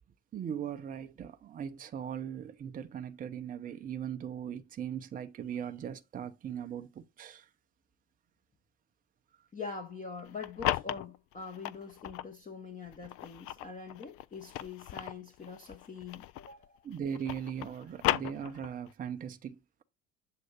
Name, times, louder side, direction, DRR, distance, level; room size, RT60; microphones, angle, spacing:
voice 1, 0.3-7.5 16.8-19.8, right 8 dB, 20° right, 0.6 m, -39 dB
voice 2, 9.5-16.8, left 5 dB, 20° left, 1.0 m, -44 dB
sound 1, 10.2-12.3 12.9-16.7 16.9-18.9, left 14 dB, 40° left, 0.4 m, -36 dB
7.6 x 2.6 x 5.7 m
figure-of-eight pair, 65°, 39 cm